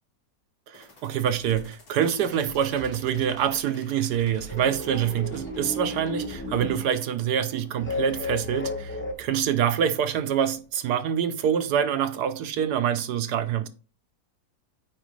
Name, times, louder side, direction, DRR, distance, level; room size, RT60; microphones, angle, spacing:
sound 1, 0.7-10.8, left 2 dB, 85° left, 3.0 m, -53 dB
voice 1, 0.7-13.7, right 9 dB, 75° right, 1.1 m, -26 dB
sound 2, 1.2-1.7 2.2-2.9 3.2-3.6 4.1-4.8 5.1-5.6 6.0-6.6, left 3 dB, 65° left, 1.0 m, -46 dB
sound 3, 2.8-3.0 4.5-6.9 7.8-9.1, left 2 dB, 10° left, 0.6 m, -33 dB
9.0 x 4.5 x 3.1 m
omnidirectional pair, 1.9 m